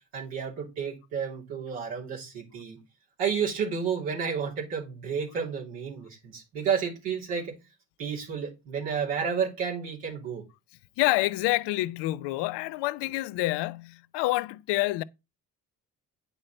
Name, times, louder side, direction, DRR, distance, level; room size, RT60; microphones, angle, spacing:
voice 1, 0.1-2.8 3.2-7.5 8.0-10.4, right 6 dB, 80° right, 3.1 m, -31 dB
voice 2, 11.0-15.0, left 18 dB, 75° left, 0.6 m, -27 dB
9.7 x 5.7 x 4.3 m
hypercardioid pair, 40°, 42 cm